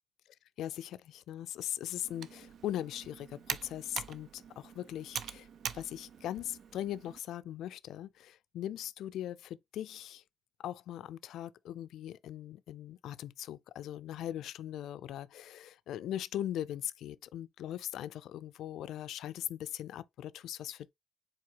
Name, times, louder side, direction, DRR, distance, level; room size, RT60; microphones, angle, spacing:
voice 1, 0.6-5.5 5.7-10.2 10.6-20.9, left 12 dB, 80° left, 0.3 m, -40 dB
Computer keyboard, 2.0-7.2, right 8 dB, 65° right, 0.5 m, -43 dB
4.7 x 3.9 x 2.8 m
cardioid pair, 90°, 0 cm